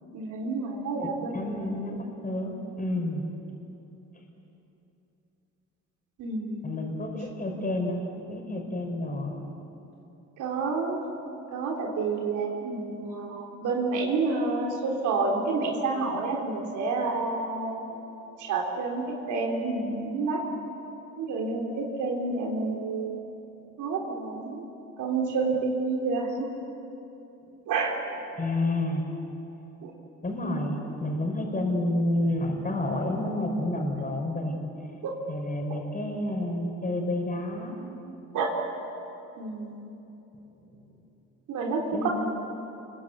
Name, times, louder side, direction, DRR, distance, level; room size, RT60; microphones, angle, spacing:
voice 1, 0.1-1.8 6.2-6.7 10.4-11.0 11.5-18.1 18.4-19.0 19.3-20.4 21.2-23.2 23.8-24.7 25.0-26.5 27.7-28.0 29.8-29.9 35.0-35.1 38.3-38.5 39.4-39.9 41.5-42.1, right 3 dB, 85° right, -1 dB, 3.6 m, -29 dB
voice 2, 1.0-3.2 6.6-8.0 8.3-9.3 28.4-29.0 30.2-34.6 35.3-37.8 41.9-42.1, left 1 dB, 30° left, 1 dB, 5.6 m, -29 dB
28.0 x 23.0 x 8.5 m, 3.0 s
cardioid pair, 90°, 30 cm